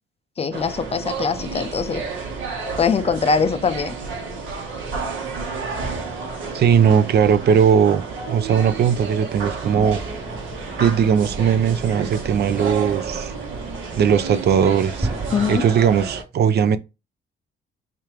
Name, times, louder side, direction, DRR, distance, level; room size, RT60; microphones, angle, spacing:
voice 1, 0.4-2.0 2.8-3.9 15.3-15.6, left 5 dB, 30° left, 0.4 m, -22 dB
sound 1, 0.5-16.2, right 4 dB, 80° right, 1.2 m, -31 dB
voice 2, 6.5-10.0 10.8-13.3 14.0-15.1 15.5-16.8, right 7 dB, 55° right, 0.5 m, -18 dB
sound 2, 9.8-15.6, right 2 dB, 10° right, 0.6 m, -35 dB
3.7 x 3.3 x 2.9 m
cardioid pair, 90°, 20 cm